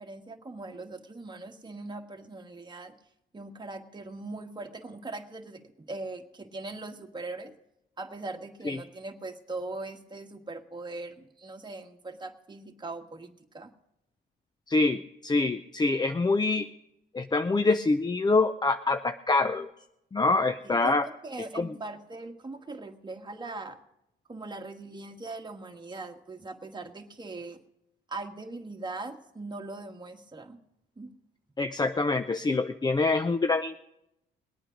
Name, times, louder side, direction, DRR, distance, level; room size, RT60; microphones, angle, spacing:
voice 1, 0.0-2.9 3.3-7.5 8.0-13.7 20.6-23.8 24.3-27.6 28.1-30.6 31.0-31.1, right 2 dB, 20° right, 4 dB, 1.4 m, -40 dB
voice 2, 14.7-16.7 17.1-19.7 20.1-21.1 21.5-21.7 31.6-33.8, left 3 dB, 20° left, 10 dB, 0.5 m, -25 dB
21.0 x 8.8 x 5.1 m, 0.84 s
cardioid pair, 90°, 20 cm